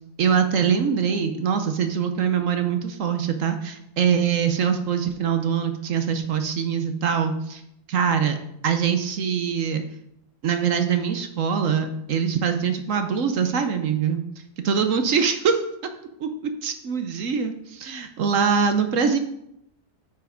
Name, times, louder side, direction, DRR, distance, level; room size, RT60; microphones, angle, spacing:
voice 1, 0.2-7.6 7.9-8.4 8.6-9.8 10.4-14.2 14.6-15.6 16.2-19.2, right 7 dB, 60° right, 7 dB, 1.1 m, -23 dB
9.0 x 5.8 x 5.1 m, 0.79 s
omnidirectional pair, 1.7 m